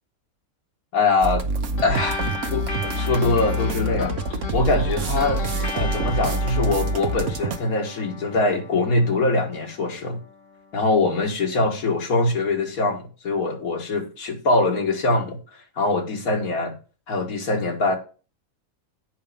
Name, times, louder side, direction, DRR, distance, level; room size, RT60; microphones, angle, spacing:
voice 1, 0.9-1.4 1.8-2.2 2.5-4.2 4.5-5.4 5.7-10.2 10.7-15.4 15.8-16.8 17.1-18.0, left 3 dB, 85° left, 2.2 m, -23 dB
sound 1, 1.2-7.6, right 2 dB, 60° right, 1.3 m, -26 dB
sound 2, 1.8-10.6, left 3 dB, 60° left, 1.5 m, -35 dB
8.6 x 5.2 x 6.9 m
omnidirectional pair, 1.5 m